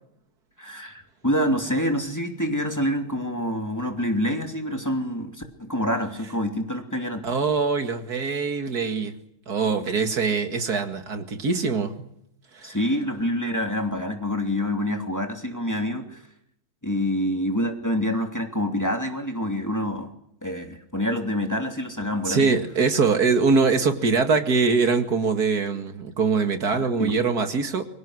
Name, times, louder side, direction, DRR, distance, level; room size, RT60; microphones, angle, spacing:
voice 1, 0.6-7.2 12.6-16.2 16.8-20.1 20.4-22.5 27.0-27.2, equal, 10° left, 4 dB, 2.8 m, -26 dB
voice 2, 7.2-9.2 9.5-12.0 12.5-12.8 22.3-27.8, right 4 dB, 80° right, 7 dB, 2.7 m, -23 dB
29.0 x 24.5 x 6.4 m, 0.76 s
omnidirectional pair, 1.6 m